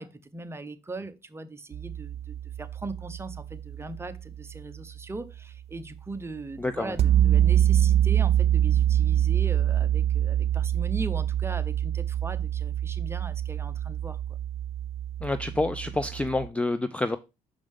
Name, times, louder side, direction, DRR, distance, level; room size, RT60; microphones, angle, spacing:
voice 1, 0.0-14.2, right 2 dB, 15° right, 0.8 m, -39 dB
sound 1, 1.7-5.0 7.0-16.5, right 11 dB, 45° right, 0.5 m, -25 dB
voice 2, 6.6-6.9 15.2-17.2, left 2 dB, 10° left, 0.4 m, -28 dB
6.4 x 5.0 x 3.5 m
cardioid pair, 90°, 15 cm